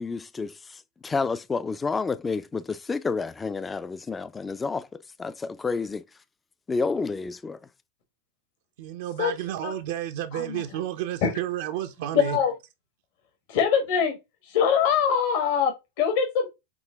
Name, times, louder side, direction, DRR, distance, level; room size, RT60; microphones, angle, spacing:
voice 1, 0.0-4.9 5.2-6.0 6.7-7.6, left 4 dB, 15° left, 0.3 m, -30 dB
voice 2, 8.8-12.4, right 12 dB, 70° right, 0.5 m, -31 dB
voice 3, 10.3-10.6 11.2-11.3 12.1-12.5 13.5-14.2 14.4-16.5, left 7 dB, 65° left, 1.1 m, -23 dB
6.0 x 2.1 x 3.3 m
hypercardioid pair, 110°, 0 cm